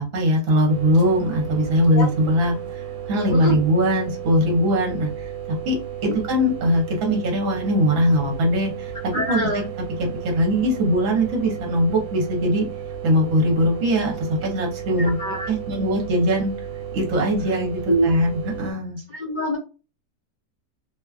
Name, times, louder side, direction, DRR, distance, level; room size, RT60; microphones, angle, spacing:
voice 1, 0.0-2.5 3.1-5.1 5.6-5.7 6.0-8.9 9.3-9.6 10.3-12.6 13.0-15.2 15.5-16.5 16.9-19.0, equal, 60° right, 0 dB, 1.1 m, -21 dB
sound 1, 0.7-18.7, right 9 dB, 90° right, 1.2 m, -34 dB
voice 2, 9.1-9.7 15.0-15.5 17.9-18.1 19.2-19.6, equal, 90° left, -3 dB, 0.4 m, -24 dB
2.8 x 2.3 x 2.3 m, 0.31 s
omnidirectional pair, 1.8 m